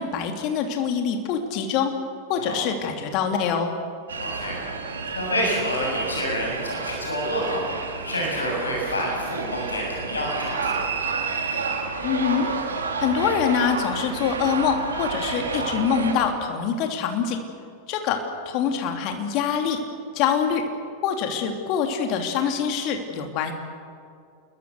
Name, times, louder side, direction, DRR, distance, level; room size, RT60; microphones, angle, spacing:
voice 1, 0.0-1.9 2.3-3.7 12.0-12.5 13.0-17.4 17.9-19.8 20.1-20.6 21.0-23.5, left 7 dB, 40° left, 4 dB, 3.1 m, -25 dB
sound 1, 4.1-16.1, right 4 dB, 70° right, 3.0 m, -30 dB
voice 2, 4.2-4.6 5.2-7.6 8.0-10.8, equal, 75° left, -2 dB, 7.1 m, -28 dB
28.0 x 22.0 x 6.7 m, 2.3 s
figure-of-eight pair, 90°, 0 cm